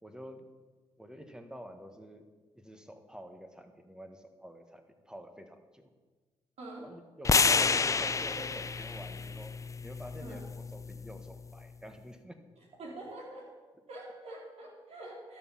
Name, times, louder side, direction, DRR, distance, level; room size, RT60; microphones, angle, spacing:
voice 1, 0.0-0.5 1.0-2.3 2.5-5.9 6.8-12.5, equal, 5° right, 7 dB, 1.5 m, -49 dB
sound 1, 7.2-11.4, left 4 dB, 30° left, 0.4 m, -30 dB
voice 2, 7.5-8.0 8.3-8.4 10.2-10.4 12.8-13.5 13.9-15.4, right 1 dB, 70° right, -2 dB, 3.6 m, -45 dB
12.5 x 7.0 x 5.7 m, 1.3 s
supercardioid pair, 55°, 11 cm